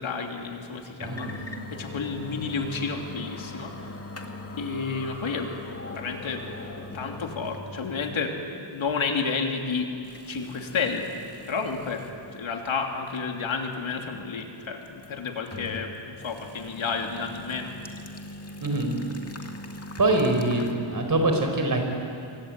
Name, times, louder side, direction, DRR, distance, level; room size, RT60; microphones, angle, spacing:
voice 1, 0.0-1.3 1.7-3.7 4.6-5.5 5.9-6.4 6.7-9.9 10.3-11.1 11.5-12.0 12.3-17.7 20.8-20.9, left 5 dB, 90° left, 3 dB, 3.1 m, -31 dB
sound 1, 1.0-7.7 8.0-8.1 8.9-9.0 10.0-12.2 12.7-12.8 14.9-15.9 16.2-20.7, left 2 dB, 30° left, 2.3 m, -41 dB
voice 2, 1.0-1.4 18.6-19.0 20.0-21.8, right 2 dB, 45° right, 3 dB, 4.8 m, -24 dB
27.0 x 23.5 x 9.0 m, 2.5 s
wide cardioid pair, 120°, 46 cm